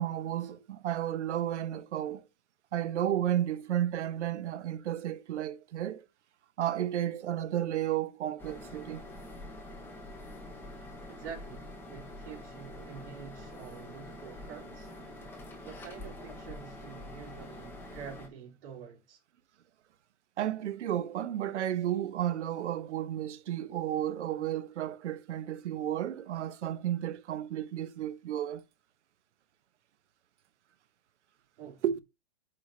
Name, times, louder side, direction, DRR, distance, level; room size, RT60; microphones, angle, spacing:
voice 1, 0.0-2.2 2.7-6.0 6.6-9.0 20.4-28.6 31.8-32.0, right 11 dB, 75° right, 1.1 m, -32 dB
sound 1, 8.4-18.3, left 1 dB, 5° left, 1.0 m, -46 dB
voice 2, 11.0-14.9 15.6-19.2 31.6-31.8, right 7 dB, 55° right, 3.6 m, -47 dB
8.6 x 5.1 x 2.7 m
hypercardioid pair, 165°, 35 cm